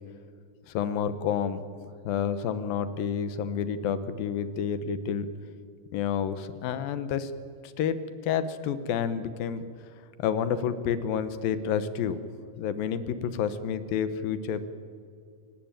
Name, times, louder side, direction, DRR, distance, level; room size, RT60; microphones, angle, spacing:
voice 1, 0.7-1.6 2.0-5.3 5.9-7.3 7.6-8.0 8.2-9.6 10.2-12.2 12.6-14.7, left 8 dB, 80° left, 12 dB, 2.9 m, -29 dB
27.5 x 18.0 x 9.1 m, 2.2 s
omnidirectional pair, 4.1 m